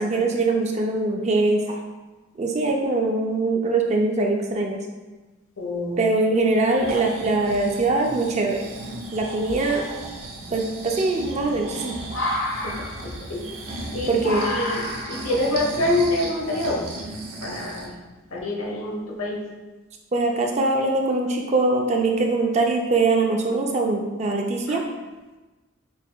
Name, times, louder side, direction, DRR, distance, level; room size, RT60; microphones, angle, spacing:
voice 1, 0.0-1.8 2.4-4.8 6.0-8.7 9.1-9.8 10.5-12.0 14.1-14.5 20.1-24.8, right 3 dB, 30° right, 2 dB, 0.4 m, -22 dB
voice 2, 5.6-6.0 12.6-12.7 13.0-13.5 13.9-16.8 17.4-18.0 18.3-19.4 24.7-24.8, left 1 dB, 85° left, -1 dB, 0.8 m, -26 dB
Breathing, 6.5-17.9 18.4-18.5, right 2 dB, 80° right, 0.7 m, -36 dB
sound 1, 7.6-8.2 8.8-8.9 9.4-17.4, left 1 dB, 60° left, 0.6 m, -32 dB
5.6 x 2.9 x 2.2 m, 1.2 s
head